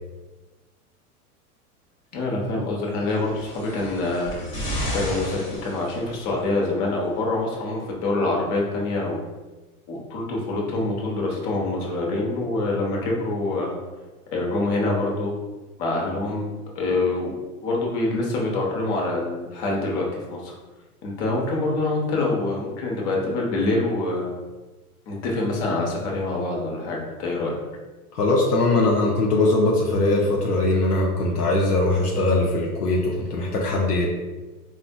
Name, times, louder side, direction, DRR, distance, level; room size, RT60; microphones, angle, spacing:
voice 1, 2.1-4.3 4.9-9.2 9.9-13.8 14.3-15.3 15.8-17.4 17.6-20.5 21.0-24.3 25.1-27.6, left 2 dB, 45° left, -2 dB, 1.0 m, -25 dB
sound 1, 3.1-6.5 7.4-7.5, equal, 25° left, 1.2 m, -32 dB
voice 2, 28.1-34.1, left 2 dB, 85° left, -2 dB, 0.7 m, -21 dB
4.1 x 2.5 x 2.2 m, 1.2 s
hypercardioid pair, 100°, 46 cm